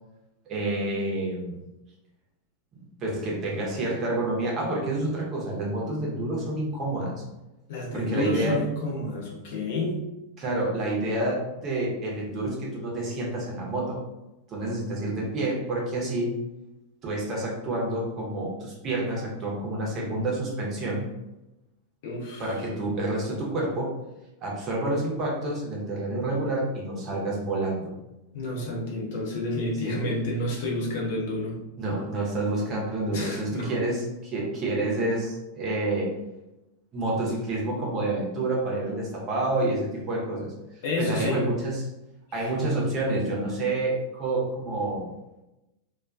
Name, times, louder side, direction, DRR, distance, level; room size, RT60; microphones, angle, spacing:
voice 1, 0.5-1.5 3.0-7.2 7.9-8.6 10.4-14.0 14.5-16.4 17.0-21.1 22.4-24.0 24.4-27.9 29.8-30.0 31.8-36.1 36.9-40.5 41.0-41.9 42.3-45.1, right 2 dB, 30° right, -2 dB, 0.7 m, -28 dB
voice 2, 7.7-10.0 22.0-22.6 28.3-31.6 33.1-33.7 40.8-41.4, left 1 dB, 50° left, -2 dB, 0.6 m, -29 dB
2.3 x 2.2 x 2.4 m, 0.97 s
figure-of-eight pair, 90°, 0 cm